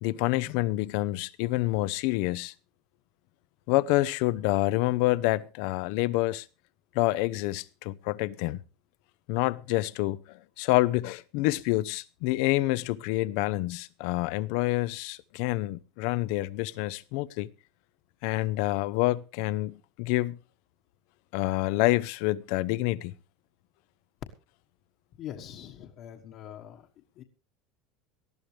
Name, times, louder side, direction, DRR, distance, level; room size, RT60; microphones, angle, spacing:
voice 1, 0.0-2.5 3.7-6.5 6.9-8.6 9.3-17.5 18.2-20.4 21.3-23.1, left 18 dB, 70° left, 0.7 m, -27 dB
voice 2, 25.2-26.9 27.2-27.3, left 10 dB, 50° left, 1.4 m, -43 dB
19.0 x 13.0 x 3.3 m
supercardioid pair, 145°, 0 cm